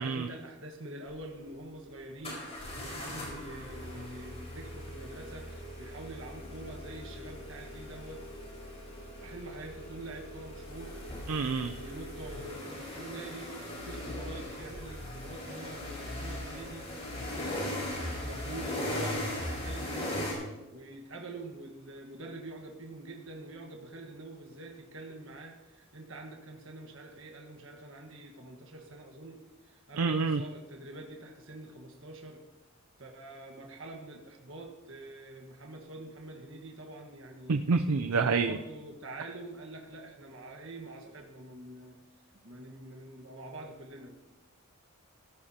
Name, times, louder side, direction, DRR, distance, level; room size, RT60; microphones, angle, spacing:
voice 1, 0.0-8.2 9.2-10.9 11.8-16.9 17.5-17.7 18.2-20.4 20.7-32.4 33.0-37.6 37.9-41.9 42.4-44.1, right 2 dB, 60° right, 2 dB, 1.5 m, -45 dB
sound 1, 1.1-1.2 2.2-20.3, left 1 dB, 30° left, 4.9 m, -39 dB
voice 2, 11.3-11.7 30.0-30.4 37.5-38.6, right 4 dB, 85° right, 6 dB, 0.5 m, -27 dB
16.0 x 14.5 x 2.9 m, 1.0 s
head